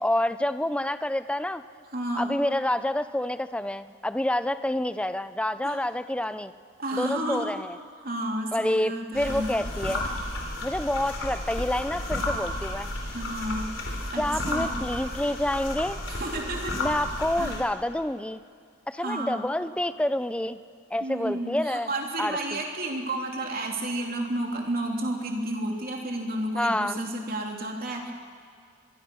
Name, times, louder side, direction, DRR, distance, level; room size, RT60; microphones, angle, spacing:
voice 1, 0.0-1.6 2.2-6.5 6.9-7.8 8.5-10.0 10.6-12.9 14.2-16.0 16.8-18.4 18.9-20.6 20.9-21.9 22.2-22.6 26.5-27.0, left 1 dB, 5° left, 12 dB, 0.6 m, -28 dB
voice 2, 1.9-2.4 5.6-5.8 6.8-7.5 8.0-9.6 13.1-13.7 14.1-14.7 16.1-16.8 17.4-17.6 19.0-19.4 21.0-28.1, right 1 dB, 50° right, 1 dB, 3.3 m, -31 dB
sound 1, 9.1-17.6, left 1 dB, 85° left, 4.1 m, -32 dB
25.5 x 22.5 x 6.3 m, 2.1 s
head